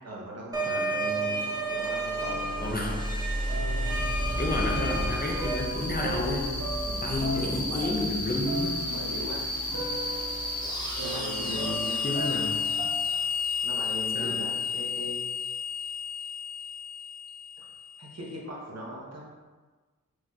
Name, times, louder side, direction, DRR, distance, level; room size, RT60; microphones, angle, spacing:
voice 1, 0.0-0.8 1.7-2.8 6.8-9.4 11.0-12.0 13.6-15.4 17.6-17.7 18.0-19.2, equal, 50° right, -3 dB, 0.9 m, -39 dB
sound 1, 0.5-5.5, right 2 dB, 10° right, 0.7 m, -32 dB
voice 2, 0.7-1.4 2.6-3.0 4.4-6.5 7.0-8.8 12.0-12.6 14.1-14.5, left 2 dB, 30° left, -1 dB, 0.5 m, -31 dB
sound 2, 0.9-3.1 3.5-13.2, right 1 dB, 80° right, 0.6 m, -39 dB
sound 3, 1.8-18.2, left 3 dB, 15° left, 1.0 m, -32 dB
4.7 x 2.8 x 2.3 m, 1.3 s
wide cardioid pair, 60°, 33 cm